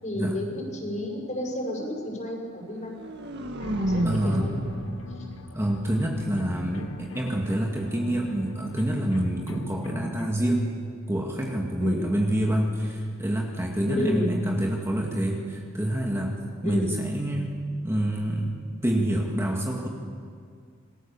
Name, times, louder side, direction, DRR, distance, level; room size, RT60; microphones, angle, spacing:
voice 1, 0.0-2.9 3.8-4.5 5.1-5.3 11.8-12.0 13.9-14.3 16.6-16.9, left 1 dB, 40° left, -1 dB, 6.8 m, -31 dB
sound 1, 2.7-6.8, right 1 dB, 60° right, 1.9 m, -32 dB
sound 2, 3.6-10.3, left 1 dB, 80° left, 1.5 m, -41 dB
voice 2, 4.0-4.5 5.5-10.7 11.1-16.4 16.6-17.6 17.8-18.6 18.8-19.9, right 1 dB, 15° right, -1 dB, 2.1 m, -27 dB
27.0 x 20.5 x 7.2 m, 2.2 s
head